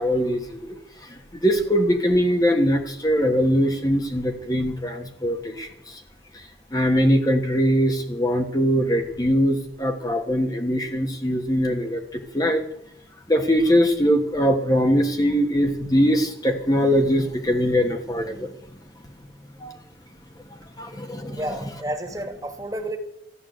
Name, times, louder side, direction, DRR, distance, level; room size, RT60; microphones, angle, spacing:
voice 1, 0.0-6.0 6.3-6.4 6.7-12.6 13.3-18.5 19.6-19.8 20.8-21.4, equal, 20° left, 4 dB, 1.3 m, -22 dB
voice 2, 21.3-23.0, right 1 dB, 20° right, 6 dB, 1.8 m, -30 dB
14.0 x 11.0 x 7.8 m, 0.77 s
head